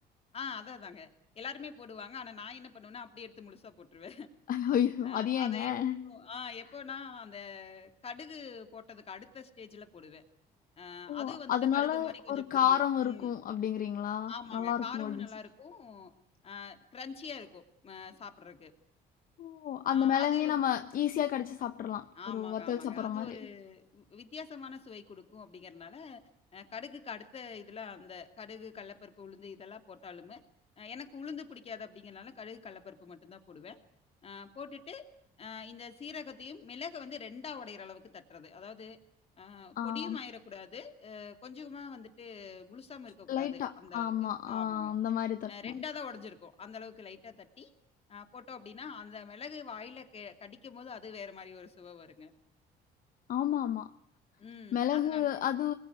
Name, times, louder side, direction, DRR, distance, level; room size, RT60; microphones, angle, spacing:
voice 1, 0.3-1.1 1.3-4.3 5.0-5.7 6.0-10.2 10.8-13.3 14.3-16.1 16.4-18.7 19.9-20.6 22.2-26.2 26.5-30.4 30.8-33.8 34.2-35.1 35.4-39.0 39.4-44.1 44.5-44.9 45.5-47.7 48.1-52.3 54.4-55.5, left 6 dB, 35° left, 7 dB, 2.8 m, -45 dB
voice 2, 4.5-6.1 11.1-15.3 19.4-23.4 39.8-40.2 43.3-45.7 53.3-53.9 54.7-55.7, left 10 dB, 55° left, 9 dB, 1.1 m, -31 dB
26.5 x 21.0 x 9.6 m, 0.71 s
cardioid pair, 110°, 17 cm